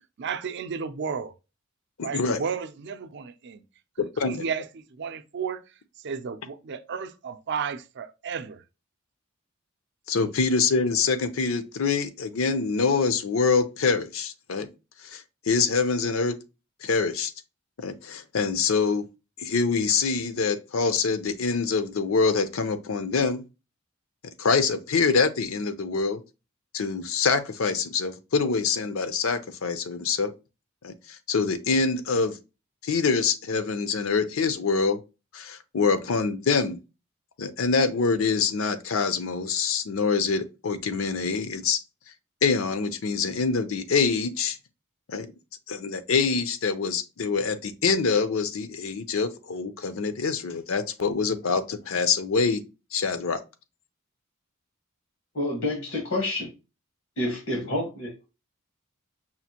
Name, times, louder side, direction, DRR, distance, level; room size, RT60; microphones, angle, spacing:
voice 1, 0.2-1.3 2.0-3.6 4.0-4.7 5.0-5.6 6.0-8.6, right 6 dB, 55° right, 0.5 m, -33 dB
voice 2, 2.0-2.4 4.0-4.4 10.1-14.7 15.0-16.4 16.8-17.3 17.8-19.0 19.4-23.4 24.4-26.2 26.7-30.3 30.8-32.4 32.8-35.0 35.3-36.8 37.4-41.8 42.4-44.6 45.1-45.3 45.7-52.6 52.9-53.4, left 4 dB, 70° left, 0.6 m, -25 dB
voice 3, 55.3-56.5 57.2-58.1, left 1 dB, 90° left, 1.4 m, -28 dB
5.7 x 2.5 x 2.8 m
head